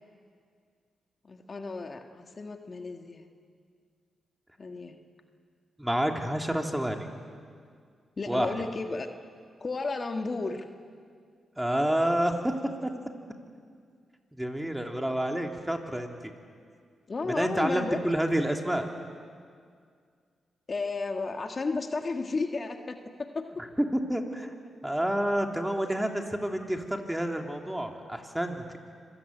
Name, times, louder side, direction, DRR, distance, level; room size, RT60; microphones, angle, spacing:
voice 1, 1.2-3.2 4.6-5.0 8.2-9.1 9.6-10.7 17.1-18.0 20.7-23.5, left 3 dB, 45° left, 5 dB, 1.7 m, -33 dB
voice 2, 5.8-7.1 8.3-8.5 11.6-12.5 12.8-12.9 14.3-16.1 17.3-18.9 23.8-24.5 24.8-28.6, right 1 dB, 10° right, 3 dB, 3.1 m, -28 dB
25.5 x 16.0 x 9.4 m, 2.1 s
supercardioid pair, 45°, 0 cm